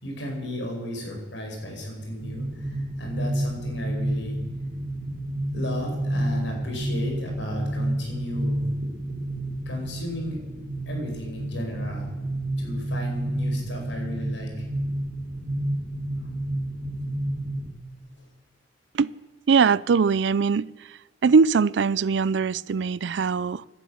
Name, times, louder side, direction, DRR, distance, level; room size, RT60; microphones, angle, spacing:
voice 1, 0.0-4.4 5.5-8.7 9.6-10.4 10.8-12.1 12.6-14.7, left 1 dB, 90° left, 5.2 m, -34 dB
sound 1, 2.2-17.7, right 1 dB, 45° right, 2.1 m, -30 dB
voice 2, 19.5-20.7 21.2-23.7, right 5 dB, 70° right, 0.4 m, -21 dB
17.0 x 11.5 x 6.5 m
head